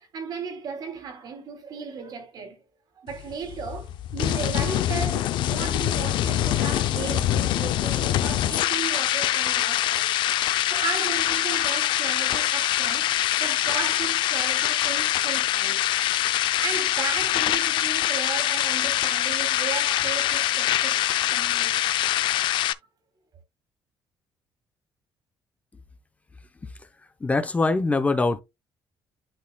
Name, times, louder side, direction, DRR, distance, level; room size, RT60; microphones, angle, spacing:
voice 1, 0.0-2.6 3.0-10.2 10.7-15.9 16.6-22.0, right 5 dB, 60° right, 2.6 m, -35 dB
sound 1, 3.1-22.7, left 13 dB, 80° left, 0.5 m, -24 dB
voice 2, 27.2-28.4, left 3 dB, 15° left, 0.7 m, -23 dB
11.5 x 4.1 x 2.2 m
cardioid pair, 140°, 8 cm